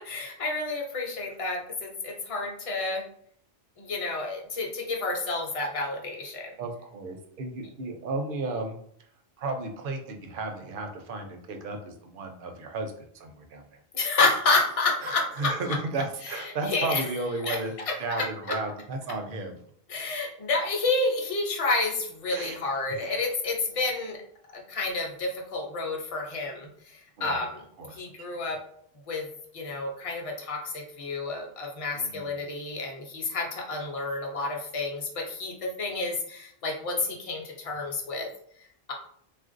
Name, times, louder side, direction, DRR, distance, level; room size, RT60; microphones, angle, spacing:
voice 1, 0.0-3.0 3.8-6.5 13.9-15.8 16.2-17.1 17.4-17.6 17.9-18.2 19.9-24.2 24.7-27.6 27.9-28.6 29.1-29.3 29.5-38.3 38.6-38.9, left 3 dB, 40° left, 1 dB, 0.6 m, -30 dB
voice 2, 6.6-8.8 9.4-13.6 15.0-17.7 18.0-19.6 22.3-22.6 22.9-23.1 27.2-27.5 27.8-28.3 31.9-32.3, right 3 dB, 65° right, 5 dB, 0.7 m, -34 dB
3.2 x 2.4 x 2.5 m, 0.66 s
omnidirectional pair, 1.0 m